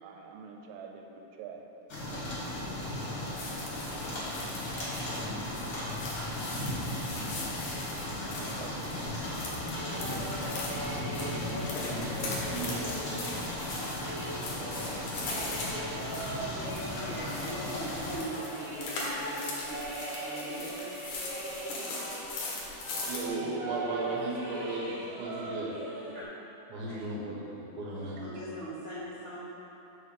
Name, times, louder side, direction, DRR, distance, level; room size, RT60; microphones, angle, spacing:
voice 1, 0.0-1.6 8.2-8.9, right 6 dB, 85° right, 2 dB, 3.3 m, -46 dB
sound 1, 1.9-18.2, left 1 dB, 45° left, 1.7 m, -36 dB
sound 2, 3.4-23.3, left 2 dB, 70° left, 1.9 m, -40 dB
sound 3, 9.8-22.5 22.8-26.2, right 1 dB, 50° right, 2.9 m, -40 dB
voice 2, 11.8-13.0 23.1-25.7 26.7-28.2, right 2 dB, 70° right, -4 dB, 3.3 m, -36 dB
voice 3, 16.7-19.9 20.2-20.7 26.0-26.2 26.9-27.1 27.9-29.4, right 1 dB, 85° left, -13 dB, 1.1 m, -41 dB
6.8 x 6.5 x 6.7 m, 3.0 s
omnidirectional pair, 5.8 m